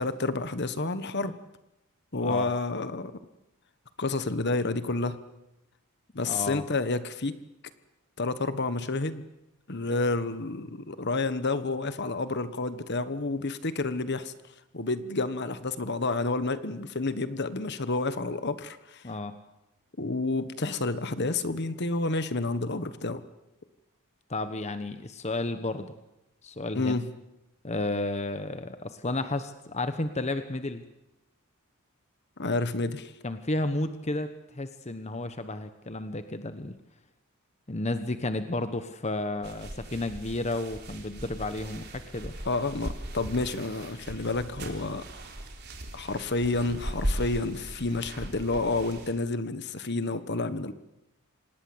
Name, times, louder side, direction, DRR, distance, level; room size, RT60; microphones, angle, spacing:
voice 1, 0.0-1.3 2.1-3.1 4.0-5.2 6.1-7.4 8.2-9.2 9.7-14.3 14.7-19.0 20.0-23.2 26.7-27.1 32.4-33.1 42.4-45.0 45.9-50.7, left 3 dB, 50° left, 12 dB, 1.3 m, -29 dB
voice 2, 2.2-2.5 6.2-6.6 19.0-19.3 24.3-25.9 26.4-27.0 27.6-30.8 33.2-34.3 34.5-36.7 37.7-42.3, left 2 dB, 30° left, 9 dB, 1.1 m, -32 dB
sound 1, 39.4-49.1, right 1 dB, 50° right, 3.8 m, -38 dB
26.5 x 19.0 x 8.0 m, 0.93 s
head